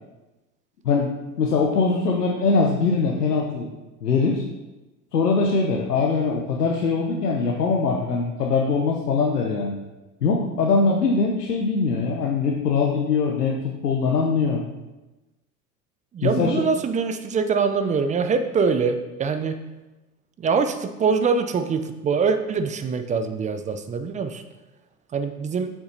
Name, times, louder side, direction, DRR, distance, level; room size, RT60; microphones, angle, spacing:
voice 1, 0.8-3.7 4.0-4.4 5.1-9.8 10.2-14.6 16.2-16.6, left 4 dB, 90° left, 0 dB, 0.8 m, -22 dB
voice 2, 16.1-19.6 20.4-24.4 25.1-25.7, right 5 dB, 15° right, 8 dB, 0.4 m, -23 dB
8.1 x 6.0 x 2.7 m, 1.1 s
hypercardioid pair, 80°, 46 cm